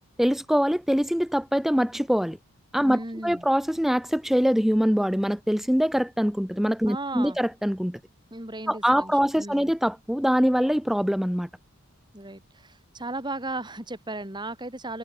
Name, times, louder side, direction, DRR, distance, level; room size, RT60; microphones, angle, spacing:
voice 1, 0.2-2.4 2.7-8.0 8.7-11.5, equal, ahead, 0.6 m, -23 dB
voice 2, 2.8-3.4 6.9-7.4 8.3-9.7 12.1-15.0, right 2 dB, 20° right, 3.9 m, -36 dB
head